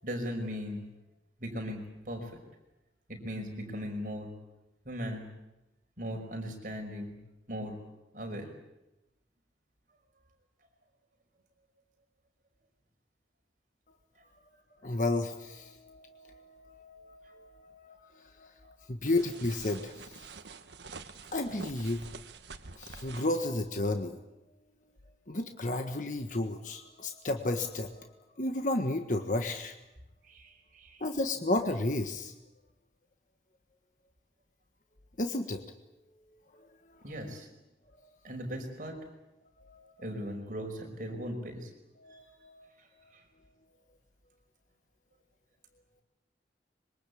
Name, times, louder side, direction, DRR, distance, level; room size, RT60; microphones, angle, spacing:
voice 1, 0.0-0.8 1.4-2.4 3.1-4.3 4.9-5.3 6.0-7.2 7.5-7.8 8.1-8.5 30.2-31.0 37.0-37.5 38.2-39.0 40.0-41.7 42.1-42.3 42.8-42.9 43.1-43.2, equal, 50° right, 3 dB, 5.6 m, -38 dB
voice 2, 14.8-20.2 21.3-22.1 22.8-24.2 25.3-28.1 28.4-29.7 31.0-32.3 35.2-35.6 39.6-39.9 42.0-42.7, left 2 dB, 45° left, 5 dB, 1.5 m, -33 dB
sound 1, 19.1-23.4, right 3 dB, 80° right, 1.4 m, -47 dB
25.5 x 23.5 x 8.6 m, 0.97 s
head